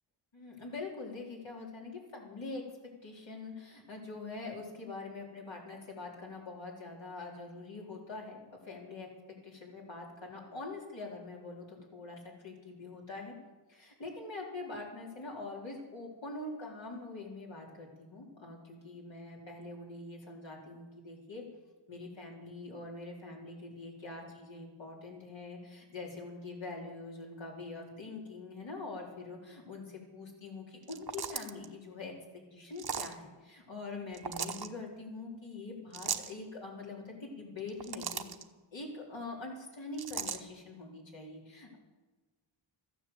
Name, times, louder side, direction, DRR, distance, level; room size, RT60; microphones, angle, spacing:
voice 1, 0.3-2.6 3.0-8.4 8.6-9.1 9.4-13.3 13.7-21.4 21.9-32.1 32.5-38.3 38.7-41.8, left 3 dB, 65° left, -2 dB, 4.1 m, -44 dB
sound 1, 30.8-31.7 32.8-33.2 34.1-34.7 35.9-36.3 37.6-38.4 40.0-40.4, right 6 dB, 50° right, 1.0 m, -37 dB
14.0 x 10.0 x 8.1 m, 1.3 s
wide cardioid pair, 75°, 49 cm